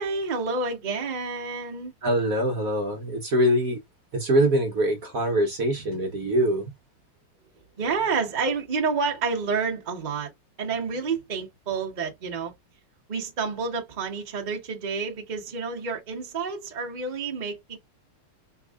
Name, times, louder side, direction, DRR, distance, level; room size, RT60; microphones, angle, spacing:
voice 1, 0.0-1.9 7.8-10.3 10.6-12.5 13.1-17.8, right 4 dB, 30° right, 1.0 m, -29 dB
voice 2, 2.0-3.8 4.1-6.7, right 1 dB, 55° right, 1.2 m, -23 dB
4.5 x 3.6 x 2.3 m
omnidirectional pair, 2.0 m